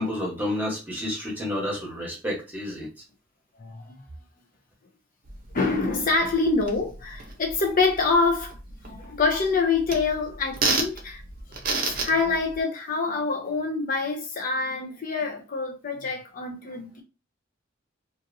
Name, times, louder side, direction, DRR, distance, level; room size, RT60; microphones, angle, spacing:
voice 1, 0.0-2.9, left 1 dB, 10° right, 1.1 m, -30 dB
voice 2, 3.6-3.9 5.5-8.5 8.8-11.2 11.5-17.0, left 4 dB, 45° left, 0.6 m, -26 dB
sound 1, 5.2-12.6, right 3 dB, 50° right, 0.7 m, -33 dB
2.9 x 2.5 x 2.6 m
head